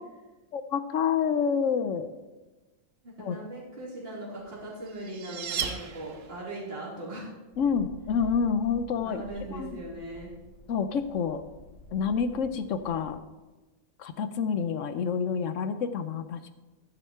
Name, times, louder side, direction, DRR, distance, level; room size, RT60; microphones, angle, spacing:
voice 1, 0.5-2.1 3.2-3.4 7.6-9.2 9.5-9.8 10.7-11.4 11.9-13.2 14.0-16.5, left 6 dB, 65° left, 11 dB, 1.0 m, -28 dB
voice 2, 3.0-7.3 9.0-10.3, right 1 dB, 40° right, -6 dB, 3.3 m, -39 dB
sound 1, 4.5-6.6, right 7 dB, 65° right, 1.2 m, -36 dB
sound 2, 7.5-13.2, equal, 50° left, 3.5 m, -50 dB
11.5 x 9.2 x 4.4 m, 1.2 s
omnidirectional pair, 1.5 m